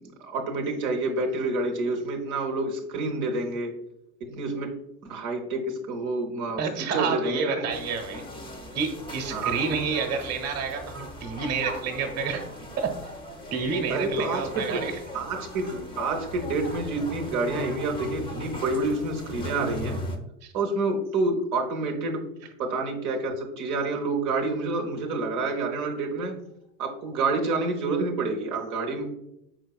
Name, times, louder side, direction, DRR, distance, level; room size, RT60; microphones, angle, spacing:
voice 1, 0.0-3.8 4.2-4.7 5.0-7.7 9.3-9.6 13.9-14.8 15.1-20.0 20.5-22.3 22.6-26.4 26.8-29.1, right 3 dB, 70° right, 2 dB, 0.8 m, -28 dB
voice 2, 6.6-8.2 8.7-12.4 12.8-12.9 13.5-14.9 15.7-15.8, right 5 dB, 35° right, 4 dB, 0.9 m, -29 dB
sound 1, 7.7-20.2, left 1 dB, 10° left, 0.5 m, -38 dB
4.6 x 4.1 x 2.3 m, 0.82 s
hypercardioid pair, 85°, 43 cm